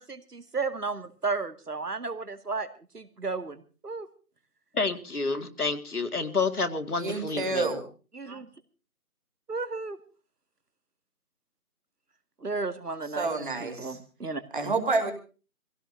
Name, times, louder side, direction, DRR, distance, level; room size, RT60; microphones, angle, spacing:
voice 1, 0.0-2.7 2.9-4.1 8.1-8.5 9.5-10.0 12.4-13.3 13.6-14.4, right 4 dB, 80° right, 10 dB, 2.1 m, -33 dB
voice 2, 4.7-7.7, left 4 dB, 70° left, 7 dB, 2.2 m, -29 dB
voice 3, 7.0-7.8 13.2-14.0 14.5-15.1, right 3 dB, 35° right, 4 dB, 2.7 m, -28 dB
24.0 x 16.5 x 2.6 m, 0.35 s
figure-of-eight pair, 170°, 46 cm